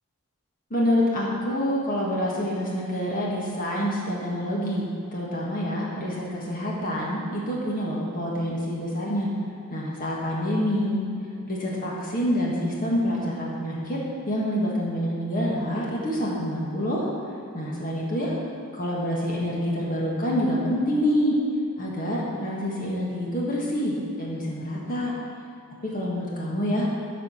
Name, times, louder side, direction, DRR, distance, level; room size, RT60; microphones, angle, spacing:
voice 1, 0.7-9.3 9.7-11.0 11.5-14.0 14.3-17.1 17.5-18.3 18.7-21.4 21.8-25.1 25.9-26.9, equal, 40° left, -5 dB, 1.7 m, -27 dB
13.5 x 4.6 x 5.7 m, 2.8 s
head